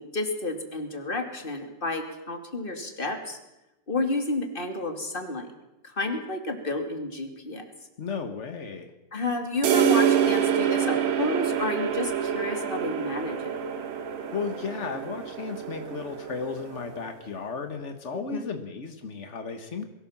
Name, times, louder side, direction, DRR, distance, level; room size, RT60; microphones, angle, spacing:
voice 1, 0.0-3.4 3.9-5.5 5.8-7.6 9.1-13.6 18.1-18.5, left 2 dB, 20° left, 4 dB, 2.4 m, -31 dB
voice 2, 8.0-8.9 14.3-19.8, left 5 dB, 70° left, 6 dB, 0.6 m, -34 dB
sound 1, 9.6-17.2, right 9 dB, 90° right, 3.3 m, -27 dB
22.5 x 17.0 x 7.3 m, 0.96 s
omnidirectional pair, 3.6 m